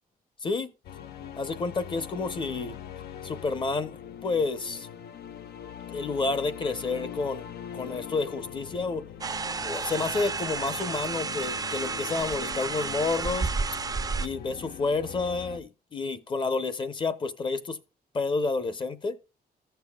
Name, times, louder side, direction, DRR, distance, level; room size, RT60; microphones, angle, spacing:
sound 1, 0.8-15.6, left 9 dB, 80° left, 0.7 m, -42 dB
voice 1, 1.4-2.8 3.2-4.9 5.9-9.0 9.6-13.5 14.2-17.8 18.1-19.2, left 3 dB, 30° left, 0.7 m, -30 dB
sound 2, 9.2-14.3, right 4 dB, 25° right, 0.4 m, -31 dB
14.5 x 6.8 x 2.2 m
wide cardioid pair, 160°, 16 cm